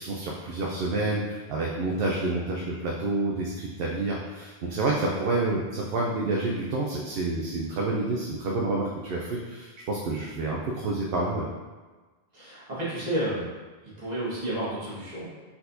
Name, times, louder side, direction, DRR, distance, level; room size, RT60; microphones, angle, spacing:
voice 1, 0.0-11.5, right 2 dB, 70° right, -2 dB, 0.7 m, -28 dB
voice 2, 12.3-13.5 13.8-15.3, right 1 dB, 40° right, -9 dB, 1.6 m, -31 dB
4.3 x 4.1 x 2.6 m, 1.3 s
omnidirectional pair, 1.0 m